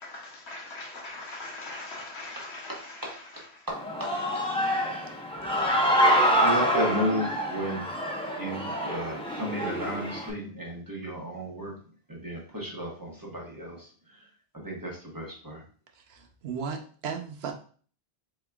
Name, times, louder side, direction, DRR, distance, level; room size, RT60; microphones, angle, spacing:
voice 1, 0.0-3.2, left 2 dB, 85° left, 1.4 m, -41 dB
voice 2, 2.7-3.1 3.7-4.1 6.3-7.9 8.4-11.7 12.1-13.8 14.5-15.6, equal, 20° right, 1.0 m, -33 dB
Human voice / Cheering, 3.7-10.3, equal, 5° left, 0.6 m, -26 dB
voice 3, 15.9-17.5, right 6 dB, 75° right, 0.9 m, -35 dB
4.2 x 3.8 x 2.3 m
omnidirectional pair, 1.1 m